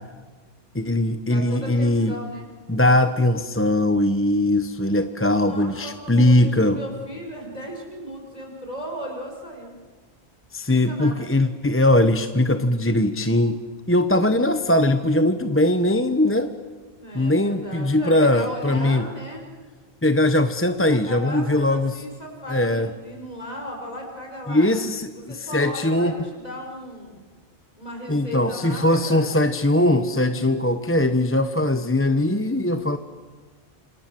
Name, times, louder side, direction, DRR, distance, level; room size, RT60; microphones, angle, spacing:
voice 1, 0.7-2.1 2.7-6.8 10.5-13.6 13.9-16.5 17.1-19.1 20.0-22.0 22.5-22.9 24.5-26.3 28.1-33.0, left 1 dB, 15° left, 9 dB, 0.9 m, -20 dB
voice 2, 1.3-2.5 5.4-9.7 10.7-11.3 17.0-19.4 20.9-24.7 25.3-27.2 27.8-29.5, equal, 35° left, 1 dB, 6.3 m, -36 dB
28.0 x 27.0 x 7.7 m, 1.4 s
omnidirectional pair, 1.1 m